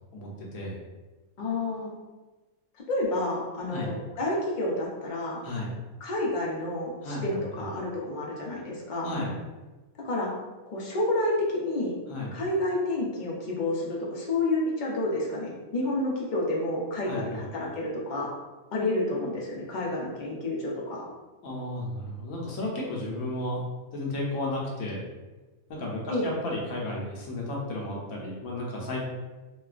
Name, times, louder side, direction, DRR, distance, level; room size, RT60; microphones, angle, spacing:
voice 1, 0.1-0.8 3.7-3.9 5.4-5.7 7.0-7.2 7.6-7.7 9.0-9.3 12.1-12.4 17.1-17.5 21.4-23.6 23.9-25.0 25.7-29.0, left 1 dB, 75° left, -3 dB, 1.1 m, -33 dB
voice 2, 1.4-1.9 2.9-5.4 6.0-9.2 10.0-10.3 10.7-11.9 12.3-18.3 18.7-21.1 26.1-26.3, left 2 dB, 50° left, -3 dB, 0.6 m, -29 dB
4.0 x 2.3 x 2.4 m, 1.2 s
omnidirectional pair, 1.5 m